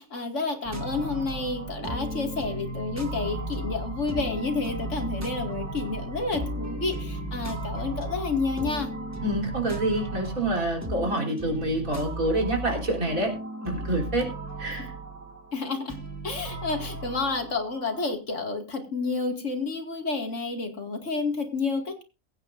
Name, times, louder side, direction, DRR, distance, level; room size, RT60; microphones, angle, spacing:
voice 1, 0.0-8.9 14.8-14.9 15.5-16.0 16.2-22.0, left 3 dB, 60° left, 4 dB, 2.5 m, -30 dB
sound 1, 0.6-18.1, right 1 dB, 10° right, 1.7 m, -35 dB
voice 2, 9.2-13.3 13.6-14.3 14.6-14.9, right 1 dB, 80° right, 0 dB, 4.1 m, -27 dB
22.0 x 9.4 x 2.6 m, 0.29 s
omnidirectional pair, 1.4 m